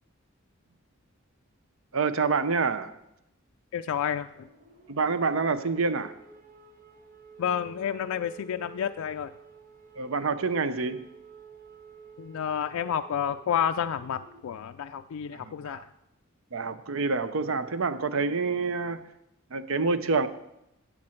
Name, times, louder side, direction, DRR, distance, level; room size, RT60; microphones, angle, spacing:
voice 1, 1.9-2.9 4.9-6.1 10.0-11.1 15.3-15.8 16.5-19.0 19.5-20.3, right 4 dB, 65° right, 13 dB, 0.6 m, -27 dB
voice 2, 3.7-4.3 7.4-9.3 12.2-15.8, left 8 dB, 75° left, 7 dB, 0.3 m, -30 dB
sound 1, 3.7-14.7, right 5 dB, 40° right, 1.3 m, -52 dB
13.5 x 8.5 x 4.4 m, 0.86 s
head